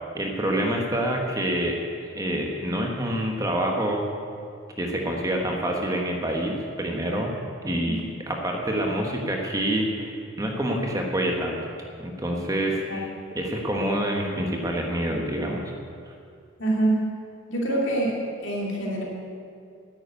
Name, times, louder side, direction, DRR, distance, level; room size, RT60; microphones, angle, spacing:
voice 1, 0.1-1.8 2.1-4.0 4.8-7.3 7.6-11.6 12.0-13.1 13.3-15.7 16.1-16.2, right 1 dB, 15° right, 1 dB, 1.3 m, -27 dB
voice 2, 16.6-17.1 17.5-18.2 18.4-19.0, right 1 dB, 60° left, -2 dB, 2.8 m, -25 dB
10.5 x 8.9 x 9.2 m, 2.3 s
head